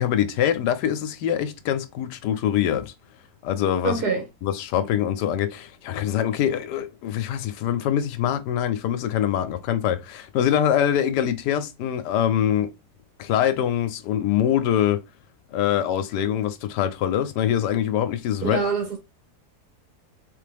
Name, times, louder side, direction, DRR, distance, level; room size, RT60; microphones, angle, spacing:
voice 1, 0.0-2.9 3.4-4.0 4.4-12.7 13.2-15.0 15.5-18.7, left 10 dB, 85° left, 1.2 m, -24 dB
voice 2, 3.8-4.2 18.4-19.0, right 5 dB, 70° right, 1.9 m, -25 dB
4.1 x 3.5 x 3.3 m
omnidirectional pair, 1.8 m